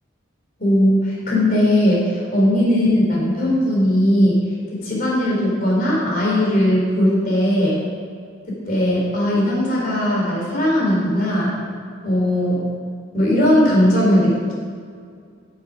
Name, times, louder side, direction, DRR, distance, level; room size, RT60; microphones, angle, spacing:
voice 1, 0.6-7.8 8.5-11.6 12.0-12.7 13.1-14.5, left 1 dB, 45° left, -4 dB, 3.3 m, -18 dB
10.5 x 9.0 x 5.1 m, 2.2 s
head